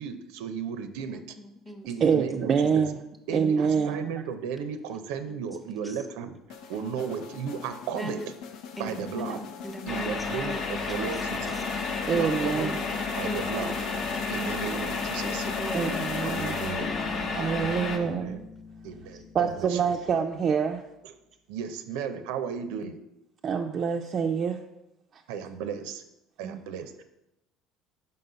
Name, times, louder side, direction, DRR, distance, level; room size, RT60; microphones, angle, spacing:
voice 1, 0.0-1.4 1.9-2.8 3.3-6.3 6.7-8.2 8.8-9.4 9.9-11.5 12.1-12.7 13.2-13.7 14.3-15.5 16.2-16.9 17.4-18.4 18.8-19.8 21.0-21.1 21.5-23.0 25.3-26.0 26.4-27.0, right 7 dB, 90° right, 0.5 m, -35 dB
voice 2, 1.1-2.1 3.3-4.0 5.3-5.5 5.8-6.0 8.0-8.2 8.8-10.6 10.9-11.2 11.5-11.6 12.2-12.3 12.6-12.8 13.2-13.8 15.2-16.1 16.9-17.5, equal, 5° left, 0.8 m, -40 dB
voice 3, 2.0-3.0 3.3-4.1 12.1-12.8 15.7-16.6 17.3-18.4 19.3-20.8 23.4-24.6 25.1-25.2 26.4-26.6, right 6 dB, 40° right, 0.4 m, -26 dB
sound 1, 6.5-17.2, left 6 dB, 70° left, 0.7 m, -39 dB
sound 2, 9.9-18.0, left 4 dB, 45° left, 1.0 m, -32 dB
Bass guitar, 16.8-20.6, left 5 dB, 85° left, 1.1 m, -42 dB
5.4 x 3.9 x 5.5 m
cardioid pair, 125°, 0 cm